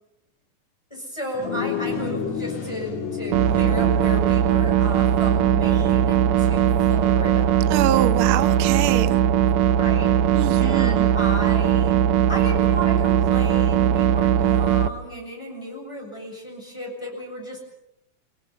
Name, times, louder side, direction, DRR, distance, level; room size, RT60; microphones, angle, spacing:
voice 1, 0.9-7.7 9.7-10.1 10.6-12.0 12.3-17.6, equal, 10° left, 0 dB, 6.9 m, -34 dB
sound 1, 1.3-10.9, left 6 dB, 60° left, 3.1 m, -34 dB
sound 2, 3.3-14.9, right 10 dB, 80° right, 2.6 m, -19 dB
voice 2, 7.7-9.2 10.3-11.1, right 12 dB, 60° right, 11 dB, 1.5 m, -25 dB
28.5 x 19.0 x 7.4 m, 0.80 s
omnidirectional pair, 3.6 m